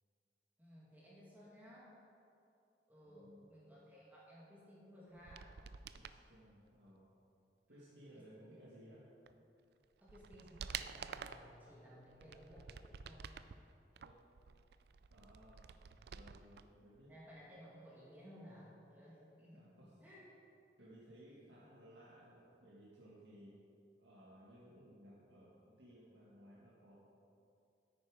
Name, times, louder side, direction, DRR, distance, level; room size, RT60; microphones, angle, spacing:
voice 1, 0.6-1.9 2.9-5.5 7.7-8.6 10.0-13.3 17.1-19.7 20.0-20.2, equal, 10° right, -7 dB, 2.0 m, -58 dB
voice 2, 3.0-3.5 5.9-7.1 7.7-9.0 12.2-12.3 14.0-14.1 15.1-15.7 16.1-17.1 19.5-20.0 20.8-23.6 24.0-27.0, equal, 85° right, -7 dB, 1.8 m, -60 dB
sound 1, 5.2-6.2 9.3-9.4 9.8-11.5 12.1-13.6 14.0-16.6 16.9-17.0, right 7 dB, 65° right, 0.4 m, -49 dB
10.0 x 8.8 x 4.9 m, 2.6 s
head